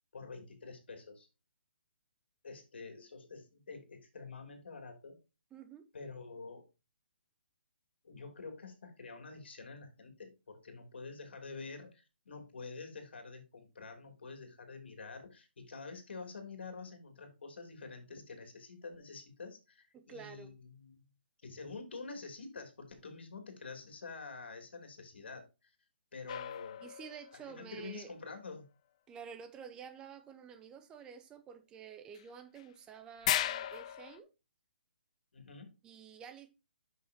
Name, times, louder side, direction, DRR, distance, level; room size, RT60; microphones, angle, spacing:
voice 1, 0.1-1.3 2.4-5.2 5.9-6.7 8.0-21.0 21.4-25.7 26.1-26.8 27.3-28.6 35.3-35.8, left 4 dB, 75° left, 3.0 m, -48 dB
voice 2, 5.5-5.8 19.9-20.5 26.8-28.1 29.1-34.3 35.8-36.5, right 7 dB, 15° right, 0.9 m, -50 dB
sound 1, 26.3-27.6 32.2-32.3 32.6-32.7 33.2-34.2, left 12 dB, 35° left, 0.4 m, -36 dB
8.5 x 6.3 x 2.8 m
hypercardioid pair, 155°, 6 cm